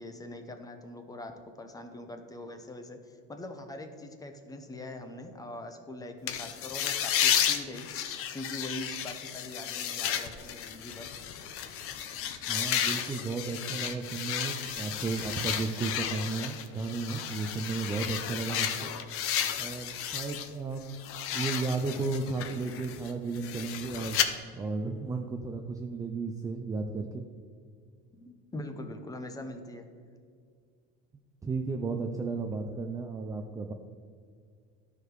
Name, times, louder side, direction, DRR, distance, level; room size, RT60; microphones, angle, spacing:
voice 1, 0.0-11.1 18.5-18.7 28.1-29.9, left 1 dB, 10° left, 6 dB, 0.7 m, -42 dB
sound 1, 6.3-20.5 20.8-24.3, left 9 dB, 50° left, 0.7 m, -33 dB
voice 2, 12.5-18.9 19.6-21.0 21.3-24.2 24.5-27.2 31.4-33.7, right 4 dB, 10° right, 4 dB, 0.4 m, -34 dB
sound 2, 13.8-14.2 14.6-15.9, right 8 dB, 50° right, 1.1 m, -51 dB
12.0 x 4.9 x 4.8 m, 2.2 s
cardioid pair, 140°, 30 cm